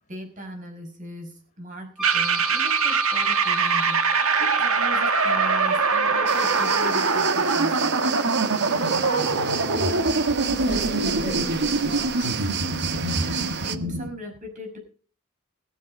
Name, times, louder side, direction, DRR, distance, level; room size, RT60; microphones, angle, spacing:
voice 1, 0.1-8.0 12.9-14.8, equal, 35° right, 3 dB, 5.5 m, -39 dB
Wind instrument woodwind instrument, 2.0-7.1, equal, ahead, 0.9 m, -30 dB
sound 1, 2.0-14.1, right 4 dB, 80° right, 1.6 m, -23 dB
sound 2, 6.3-13.8, right 8 dB, 50° right, 1.0 m, -31 dB
voice 2, 8.6-9.3 9.6-12.3, left 1 dB, 40° left, 5 dB, 4.7 m, -36 dB
21.0 x 7.8 x 5.3 m, 0.40 s
head